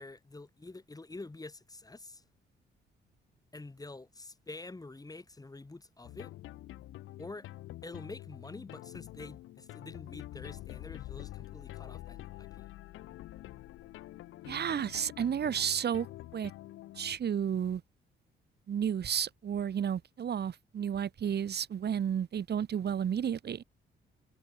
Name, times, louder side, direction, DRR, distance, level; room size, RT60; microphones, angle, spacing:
voice 1, 0.0-2.2 3.5-6.3 7.2-7.5 7.8-12.7, left 2 dB, 20° left, 7.4 m, -47 dB
sound 1, 6.0-17.2, left 16 dB, 90° left, 2.0 m, -47 dB
voice 2, 14.5-16.1 16.3-16.5 17.0-17.8 18.7-23.6, right 8 dB, 55° right, 4.0 m, -32 dB
cardioid pair, 90°, 20 cm